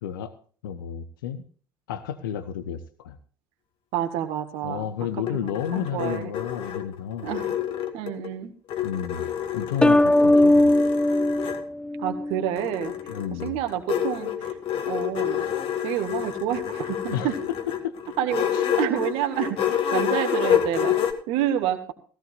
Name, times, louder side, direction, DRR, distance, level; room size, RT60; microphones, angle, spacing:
voice 1, 0.0-0.3 0.6-1.4 1.9-3.2 4.6-7.3 8.8-9.3 9.5-10.8 13.1-13.6 17.1-17.3 17.8-18.0 18.5-18.6, left 9 dB, 70° left, 12 dB, 1.0 m, -31 dB
voice 2, 3.9-4.9 5.3-6.3 7.2-7.6 7.9-8.5 12.0-13.1 13.4-14.5 14.9-15.5 15.8-17.4 18.2-21.0 21.3-21.9, right 11 dB, 60° right, 6 dB, 1.8 m, -28 dB
sound 1, 5.0-8.3 8.7-11.6 12.6-21.1, left 9 dB, 50° left, 2.3 m, -28 dB
sound 2, 9.8-12.5, left 1 dB, 10° left, 0.6 m, -19 dB
16.5 x 16.0 x 2.6 m, 0.42 s
figure-of-eight pair, 60°, 12 cm